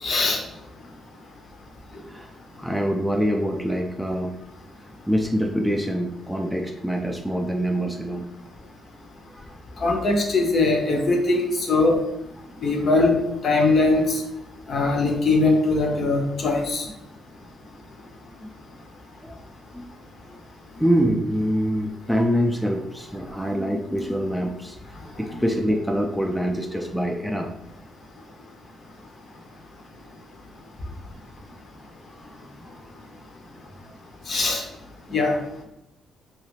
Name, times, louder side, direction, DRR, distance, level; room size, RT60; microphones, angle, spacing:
voice 1, 0.0-0.4 9.8-12.0 12.6-13.1 13.4-14.2 14.7-16.8 34.3-34.6 35.1-35.4, left 3 dB, 50° left, 2 dB, 0.7 m, -21 dB
voice 2, 1.9-2.3 2.6-4.3 5.1-8.3 9.3-9.5 18.4-18.5 19.2-19.3 19.7-19.9 20.8-24.8 25.2-27.5 32.1-32.4, equal, ahead, 2 dB, 0.3 m, -25 dB
3.1 x 2.4 x 3.1 m, 0.87 s
cardioid pair, 90°, 0 cm